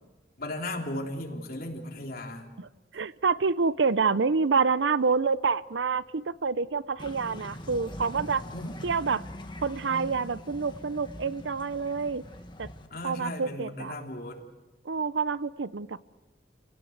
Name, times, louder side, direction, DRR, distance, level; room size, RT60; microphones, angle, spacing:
voice 1, 0.4-2.5 8.5-8.7 12.9-14.4, left 1 dB, 55° left, 1 dB, 3.7 m, -36 dB
voice 2, 2.9-8.4 8.8-9.2 9.6-12.2 12.6-12.7 13.0-14.0 14.8-16.0, right 5 dB, 85° right, 17 dB, 0.7 m, -27 dB
sound 1, 7.0-12.9, left 1 dB, 25° left, 1.7 m, -42 dB
29.0 x 17.5 x 8.1 m, 1.2 s
head